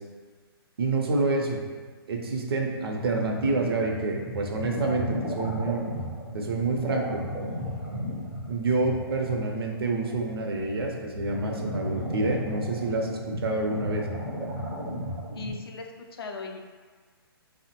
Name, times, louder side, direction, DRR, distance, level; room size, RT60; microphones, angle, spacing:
voice 1, 0.8-1.6 2.1-5.9 6.3-7.2 8.5-14.0, right 3 dB, 70° right, 1 dB, 0.5 m, -28 dB
sound 1, 2.9-15.5, equal, ahead, 0.4 m, -35 dB
voice 2, 15.3-16.6, left 3 dB, 65° left, 2 dB, 0.4 m, -38 dB
3.0 x 2.1 x 2.8 m, 1.5 s
hypercardioid pair, 155°, 13 cm